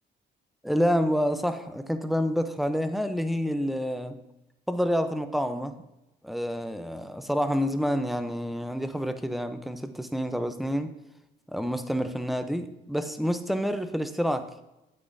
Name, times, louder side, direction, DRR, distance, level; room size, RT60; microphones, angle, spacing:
voice 1, 0.6-4.2 4.7-5.8 6.2-10.9 11.5-14.5, equal, ahead, 9 dB, 0.7 m, -28 dB
9.5 x 8.4 x 2.7 m, 0.92 s
cardioid pair, 90°, 20 cm